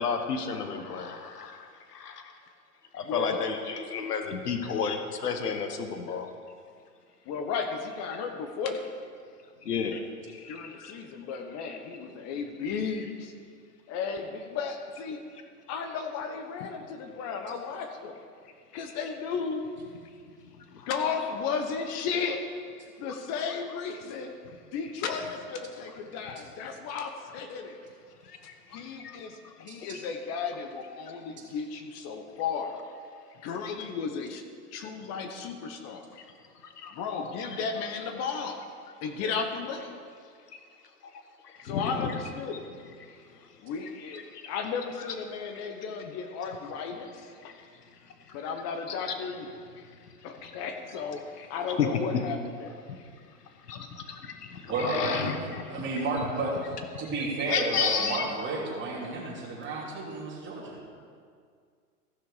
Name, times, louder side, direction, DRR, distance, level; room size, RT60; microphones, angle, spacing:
voice 1, 0.0-2.3 2.9-6.3 9.6-10.0 10.3-10.9 11.6-11.8 20.7-20.9 28.2-29.2 36.2-36.3 36.6-37.0 41.4-42.1 44.3-44.5 47.4-47.5 48.3-48.4 51.4-51.5 51.8-51.9 53.7-55.6 57.5-58.3, left 6 dB, 85° left, 6 dB, 1.2 m, -32 dB
voice 2, 3.0-3.4 7.3-8.9 10.5-13.3 13.9-15.2 15.7-18.2 18.7-19.6 20.9-22.4 23.0-24.3 24.7-27.8 28.7-32.7 33.4-34.4 34.7-36.1 36.9-38.6 39.0-39.9 41.6-42.7 43.6-47.3 48.3-49.5 50.2-51.2 51.5-52.8 55.0-55.2 60.6-60.7 61.0-61.1, left 5 dB, 35° left, 5 dB, 1.0 m, -34 dB
voice 3, 29.7-30.0 54.7-56.6 57.0-60.7, right 3 dB, 25° right, -4 dB, 3.1 m, -32 dB
15.0 x 6.2 x 5.0 m, 2.1 s
hypercardioid pair, 120°, 46 cm